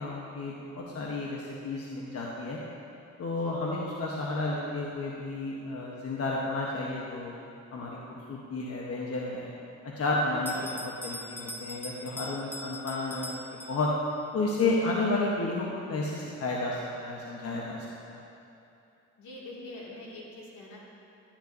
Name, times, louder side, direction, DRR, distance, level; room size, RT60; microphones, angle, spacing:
voice 1, 0.0-2.6 3.2-7.3 7.7-9.5 9.8-13.4 13.7-13.9 14.3-18.2, left 2 dB, 50° left, -3 dB, 1.1 m, -32 dB
voice 2, 3.3-3.6 19.2-20.8, left 2 dB, 80° left, -5 dB, 2.4 m, -45 dB
Bell, 10.4-14.2, left 1 dB, 5° left, 0.4 m, -42 dB
12.5 x 10.0 x 2.7 m, 2.7 s
cardioid pair, 90°, 30 cm